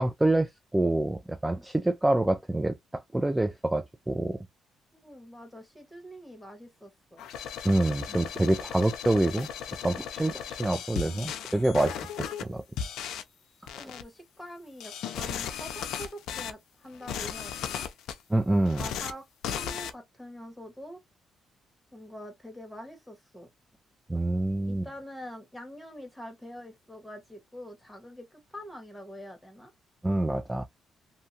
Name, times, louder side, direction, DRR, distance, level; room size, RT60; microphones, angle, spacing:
voice 1, 0.0-4.4 7.6-9.5 9.8-12.6 13.8-13.9 18.3-18.9 24.1-24.9 30.0-30.6, right 1 dB, 10° right, 0.4 m, -26 dB
voice 2, 4.9-7.3 13.7-17.9 18.8-21.0 21.9-23.5 24.7-29.7, equal, 5° left, 1.3 m, -45 dB
sound 1, 7.2-12.4 12.8-13.2 13.7-14.0 14.8-16.5 16.9-18.2 18.7-19.1 19.4-19.9, left 8 dB, 80° left, 0.5 m, -36 dB
2.7 x 2.3 x 2.7 m
cardioid pair, 90°, 0 cm